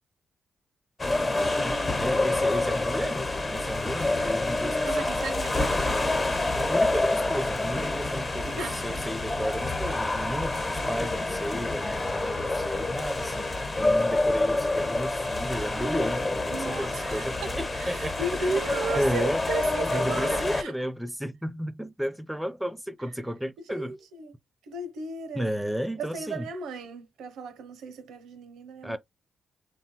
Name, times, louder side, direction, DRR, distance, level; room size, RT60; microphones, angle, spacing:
sound 1, 1.0-20.6, left 2 dB, 35° left, 1.0 m, -27 dB
voice 1, 1.2-5.1 6.5-18.3 19.0-19.4 19.9-23.9 25.4-26.4 28.8-29.0, equal, 5° right, 0.6 m, -33 dB
voice 2, 4.8-6.2 8.5-9.0 16.5-20.7 23.7-24.3 24.6-25.6 26.0-29.0, right 3 dB, 80° right, 0.6 m, -35 dB
3.2 x 2.2 x 2.9 m
supercardioid pair, 45°, 0 cm